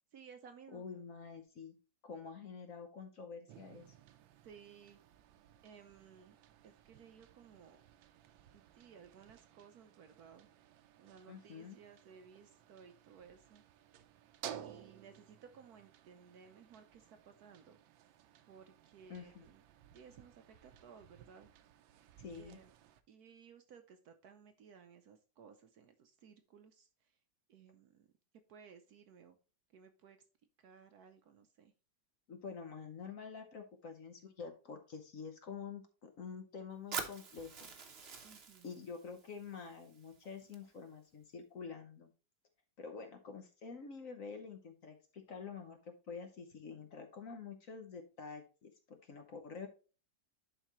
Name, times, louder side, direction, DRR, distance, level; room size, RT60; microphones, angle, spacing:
voice 1, 0.1-0.8 4.4-5.0 5.6-6.4 6.6-7.8 8.5-10.5 11.0-13.6 14.6-17.8 18.5-19.6 19.9-21.5 22.4-22.7 23.1-27.2 27.5-28.1 28.5-29.4 29.7-30.2 30.6-31.7 38.2-38.7, right 6 dB, 70° right, 8 dB, 1.0 m, -58 dB
voice 2, 0.7-1.7 2.0-3.9 11.3-11.8 19.1-19.4 22.2-22.6 32.3-37.7 38.6-42.1 42.8-49.7, left 5 dB, 55° left, 5 dB, 1.0 m, -48 dB
sound 1, 3.5-23.0, right 10 dB, 85° right, 1.4 m, -56 dB
Fire, 36.9-40.9, right 5 dB, 45° right, 0.9 m, -46 dB
11.0 x 4.0 x 3.0 m, 0.34 s
omnidirectional pair, 2.1 m